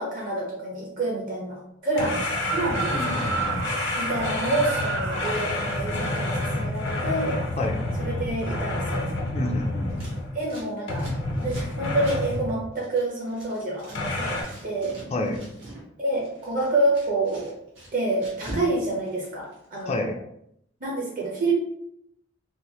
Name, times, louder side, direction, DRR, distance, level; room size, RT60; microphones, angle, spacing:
voice 1, 0.0-3.3 4.0-7.4 8.0-9.1 10.3-11.1 11.4-15.0 16.0-17.6 17.9-20.2 20.8-21.5, right 2 dB, 45° right, -2 dB, 1.1 m, -28 dB
sound 1, 2.0-10.5 10.9-12.6 13.9-14.4, left 2 dB, 90° left, 0.9 m, -29 dB
sound 2, 2.0-5.4, right 5 dB, 85° right, 0.4 m, -32 dB
voice 2, 2.9-3.7 7.6-7.8 9.3-10.1 15.1-15.4 19.9-20.2, left 2 dB, 35° left, 2 dB, 0.4 m, -29 dB
Scissors, 9.9-14.0 14.2-15.8 16.1-18.7 19.0-19.9, equal, 70° right, 1.5 m, -42 dB
4.1 x 2.1 x 3.0 m, 0.75 s
head